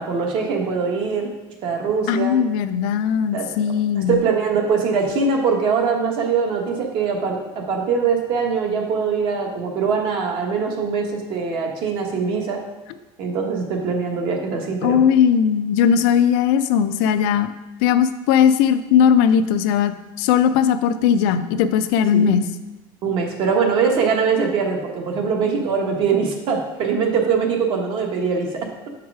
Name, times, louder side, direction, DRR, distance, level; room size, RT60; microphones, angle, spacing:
voice 1, 0.0-1.3 1.6-2.4 3.3-3.5 4.0-12.6 13.2-15.0 22.1-22.3 23.0-28.9, right 5 dB, 45° right, 2 dB, 1.3 m, -22 dB
voice 2, 2.1-4.2 14.8-17.5 17.8-19.9 20.2-22.5, left 8 dB, 70° left, 11 dB, 0.5 m, -18 dB
7.3 x 4.8 x 4.8 m, 1.1 s
cardioid pair, 155°, 12 cm